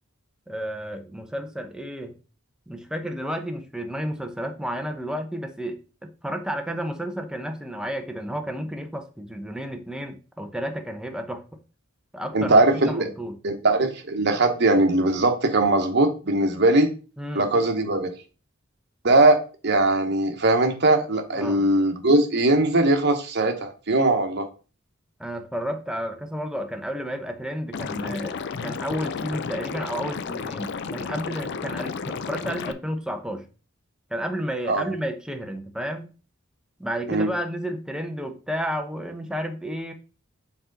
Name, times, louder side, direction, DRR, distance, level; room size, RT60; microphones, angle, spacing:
voice 1, 0.5-2.2 2.7-11.4 12.1-13.4 17.2-17.5 21.3-21.6 25.2-33.5 34.1-36.1 36.8-39.9, equal, 5° right, 5 dB, 0.7 m, -32 dB
voice 2, 12.3-13.1 13.4-16.9 17.3-18.1 19.0-19.4 19.6-24.5 34.7-34.8 37.1-37.3, right 2 dB, 55° right, 5 dB, 1.1 m, -20 dB
Liquid, 27.7-32.7, left 5 dB, 55° left, 0.5 m, -32 dB
6.0 x 4.3 x 3.9 m, 0.35 s
head